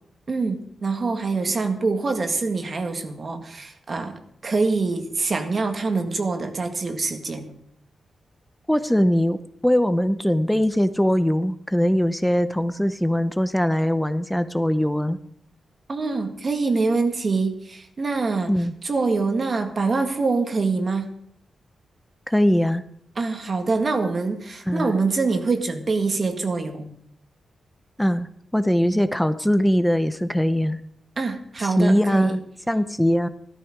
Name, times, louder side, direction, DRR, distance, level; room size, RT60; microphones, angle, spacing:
voice 1, 0.3-7.5 15.9-18.6 18.8-21.1 23.2-26.9 31.2-32.4, right 3 dB, 40° right, 6 dB, 1.8 m, -25 dB
voice 2, 8.7-15.2 18.5-18.7 22.3-22.8 24.7-24.9 28.0-30.8 31.6-32.4 32.7-33.3, equal, 5° left, 11 dB, 0.6 m, -21 dB
14.5 x 13.5 x 4.9 m, 0.68 s
wide cardioid pair, 130°, 0 cm